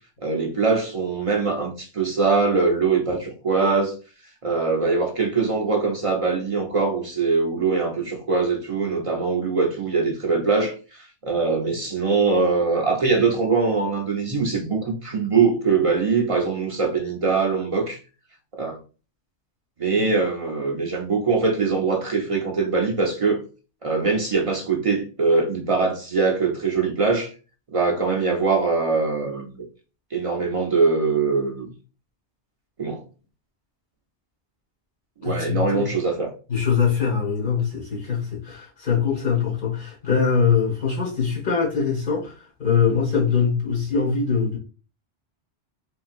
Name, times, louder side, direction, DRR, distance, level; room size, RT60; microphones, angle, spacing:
voice 1, 0.2-3.9 4.4-18.0 18.5-18.8 19.8-23.4 23.8-27.3 27.7-29.6 30.1-31.7 32.8-33.0 35.2-36.3, right 4 dB, 50° right, 0.4 m, -22 dB
voice 2, 35.2-35.9 36.5-44.6, left 6 dB, 50° left, 1.4 m, -23 dB
3.1 x 2.7 x 2.4 m
omnidirectional pair, 1.1 m